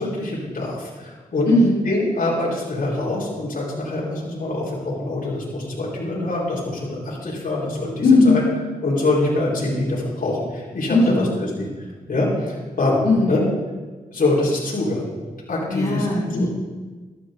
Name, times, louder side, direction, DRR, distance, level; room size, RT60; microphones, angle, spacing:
voice 1, 0.0-1.5 1.8-8.4 8.8-11.7 12.1-13.4 14.1-15.1 15.5-16.1 16.4-16.5, left 2 dB, 55° left, -6 dB, 4.7 m, -24 dB
voice 2, 1.4-1.8 8.0-8.4 10.9-11.3 13.0-13.3 15.7-16.5, left 2 dB, 75° left, -9 dB, 4.3 m, -17 dB
13.0 x 11.5 x 3.9 m, 1.3 s
supercardioid pair, 40°, 16 cm